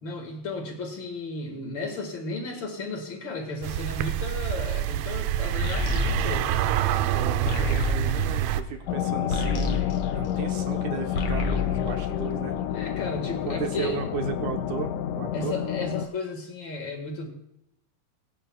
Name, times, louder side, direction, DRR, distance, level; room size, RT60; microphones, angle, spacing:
voice 1, 0.0-6.5 12.7-14.0 15.3-17.3, left 3 dB, 45° left, 2 dB, 1.8 m, -34 dB
sound 1, 3.6-8.6, right 12 dB, 85° right, 2.3 m, -26 dB
Krucifix Productions they are coming, 5.6-10.8 11.1-12.8, left 4 dB, 60° left, 1.7 m, -30 dB
voice 2, 7.1-9.9 10.1-12.6 13.5-14.9 15.2-15.5, right 7 dB, 65° right, 4 dB, 2.2 m, -34 dB
sound 2, 8.9-16.1, left 10 dB, 85° left, 1.8 m, -29 dB
21.5 x 10.0 x 2.3 m, 0.81 s
omnidirectional pair, 4.2 m